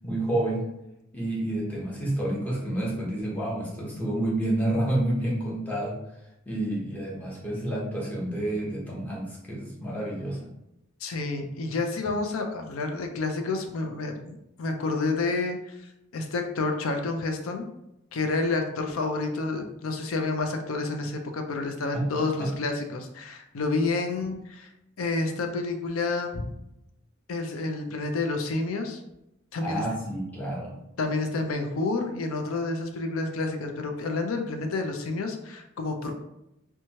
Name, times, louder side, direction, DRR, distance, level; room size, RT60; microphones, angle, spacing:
voice 1, 0.0-0.7 1.1-6.0 6.5-10.5 21.9-22.1 22.4-22.5 29.6-30.7, right 1 dB, 10° left, -5 dB, 0.8 m, -29 dB
voice 2, 11.0-15.8 16.1-17.7 18.1-24.7 25.0-26.4 27.3-29.0 29.5-29.8 31.0-36.1, left 3 dB, 85° left, 5 dB, 0.5 m, -29 dB
3.0 x 2.2 x 2.7 m, 0.86 s
head